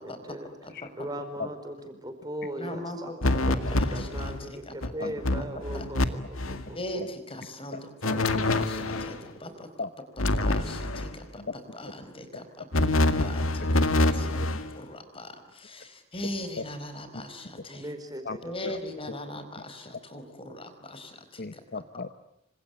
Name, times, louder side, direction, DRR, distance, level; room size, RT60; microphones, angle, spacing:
voice 1, 0.0-0.5 1.0-7.0 8.0-9.6 17.7-18.7, right 1 dB, 20° right, 8 dB, 4.7 m, -40 dB
voice 2, 2.6-3.4 3.8-5.1 5.4-5.5 5.7-5.9 6.7-9.2 9.4-9.7 10.2-12.6 12.9-13.4 13.7-14.5 14.7-15.3 15.6-17.9 18.4-21.1, left 1 dB, 25° left, 9 dB, 4.6 m, -40 dB
Electric Buzz, 3.2-4.4 4.8-4.9 5.2-6.1 6.3-6.7 8.0-9.2 10.2-11.2 12.7-14.7, left 2 dB, 90° left, 2.1 m, -25 dB
voice 3, 8.1-8.7 9.8-9.9 11.4-11.5 13.2-13.3 14.4-14.5 16.6-16.7 18.2-18.4 18.6-18.8 21.4-22.1, left 3 dB, 50° left, 11 dB, 1.0 m, -36 dB
28.0 x 26.0 x 8.1 m, 0.78 s
head